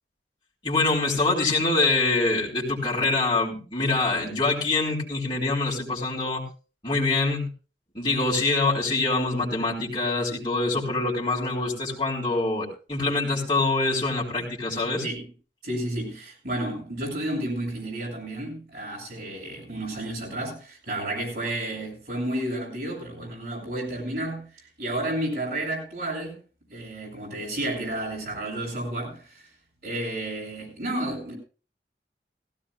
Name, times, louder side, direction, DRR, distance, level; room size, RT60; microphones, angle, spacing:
voice 1, 0.6-6.4 6.8-7.5 7.9-15.1, left 3 dB, 25° left, 4.4 m, -25 dB
voice 2, 15.6-26.4 26.7-29.5 29.8-31.3, right 1 dB, 55° right, 7.1 m, -31 dB
17.5 x 16.0 x 2.5 m
head